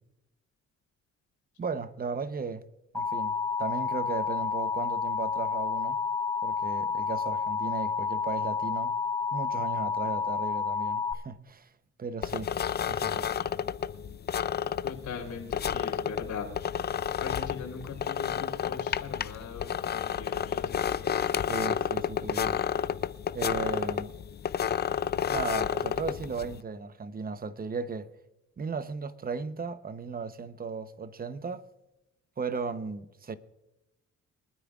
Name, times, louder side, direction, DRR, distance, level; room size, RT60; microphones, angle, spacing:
voice 1, 1.6-2.6 2.9-6.0 6.4-9.0 9.3-11.7 12.0-12.5 12.9-13.3 21.5-22.6 23.3-24.1 25.3-28.1 28.6-31.7 32.4-33.3, right 4 dB, 30° right, 0.8 m, -36 dB
Alarm, 2.9-11.1, left 5 dB, 10° left, 1.1 m, -30 dB
sound 1, 12.2-26.6, left 8 dB, 35° left, 0.5 m, -31 dB
voice 2, 14.8-16.5 16.9-21.3, left 6 dB, 70° left, 3.8 m, -40 dB
24.0 x 9.5 x 2.4 m
cardioid pair, 90°, 30 cm